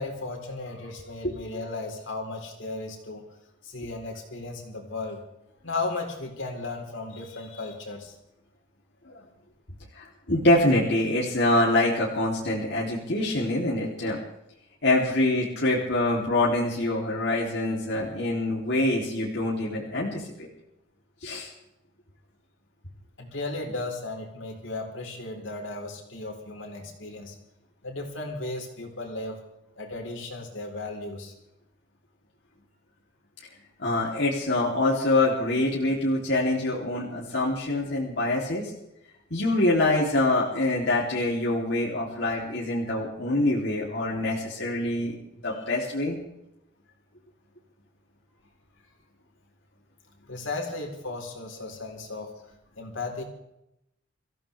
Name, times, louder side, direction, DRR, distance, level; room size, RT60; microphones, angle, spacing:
voice 1, 0.0-3.2 3.6-5.2 5.6-8.2 18.0-18.1 23.2-27.4 27.8-29.4 29.8-31.3 45.6-45.7 50.3-52.3 52.8-53.2, left 2 dB, 75° left, 1 dB, 4.2 m, -35 dB
voice 2, 10.0-14.2 14.8-20.5 21.2-21.5 33.8-38.7 39.3-45.1 45.4-46.2, left 2 dB, 60° left, -5 dB, 3.4 m, -25 dB
25.5 x 15.5 x 3.5 m, 0.82 s
head